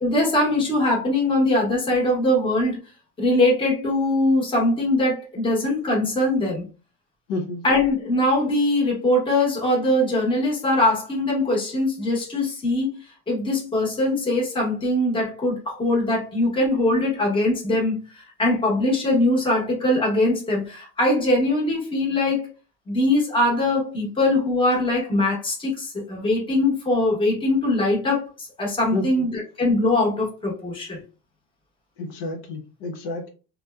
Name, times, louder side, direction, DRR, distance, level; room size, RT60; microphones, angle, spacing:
voice 1, 0.0-2.8 3.2-6.7 7.6-13.0 13.3-22.5 22.9-31.0, left 1 dB, 15° left, -3 dB, 0.8 m, -22 dB
voice 2, 7.3-7.6 28.9-29.3 32.0-33.3, left 2 dB, 75° left, 3 dB, 0.8 m, -30 dB
2.7 x 2.1 x 2.2 m, 0.34 s
cardioid pair, 140°, 38 cm